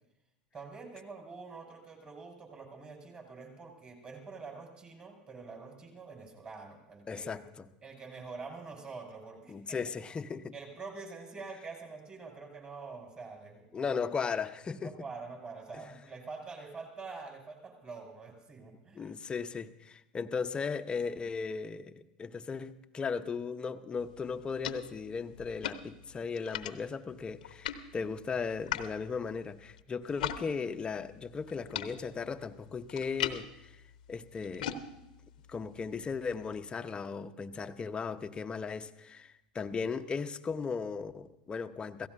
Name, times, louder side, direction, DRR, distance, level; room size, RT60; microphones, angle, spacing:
voice 1, 0.5-7.4 7.8-9.8 10.5-13.9 14.8-19.1, right 4 dB, 25° right, 1 dB, 5.5 m, -46 dB
voice 2, 7.1-7.7 9.5-10.5 13.7-14.9 18.9-33.8 34.1-34.8 35.5-42.1, left 5 dB, 20° left, 10 dB, 0.8 m, -37 dB
sound 1, 24.0-30.4 30.7-36.6, left 10 dB, 70° left, 0.9 m, -42 dB
28.0 x 17.0 x 2.7 m, 0.90 s
figure-of-eight pair, 80°, 4 cm